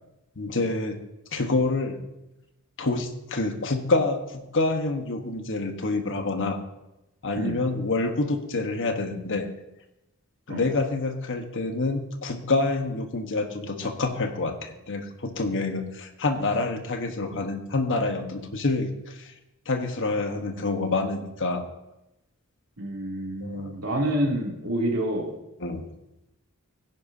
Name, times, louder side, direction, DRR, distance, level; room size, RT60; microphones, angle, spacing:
voice 1, 0.4-1.0 1.3-2.0 2.8-6.6 7.2-9.5 10.5-19.3 19.7-21.6 23.4-23.8 25.6-25.9, left 3 dB, 60° left, 5 dB, 1.3 m, -27 dB
voice 2, 22.8-25.3, right 1 dB, 75° right, -2 dB, 2.9 m, -28 dB
16.5 x 10.5 x 2.8 m, 0.95 s
head